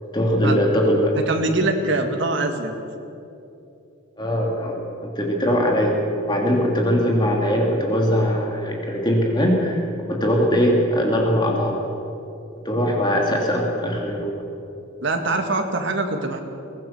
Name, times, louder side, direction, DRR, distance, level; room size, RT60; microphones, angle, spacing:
voice 1, 0.0-1.2 4.2-9.8 10.1-11.8 12.6-14.4, equal, 20° left, 0 dB, 2.6 m, -21 dB
voice 2, 1.3-2.7 15.0-16.4, right 2 dB, 60° right, 4 dB, 2.1 m, -23 dB
23.0 x 17.5 x 7.2 m, 2.8 s
head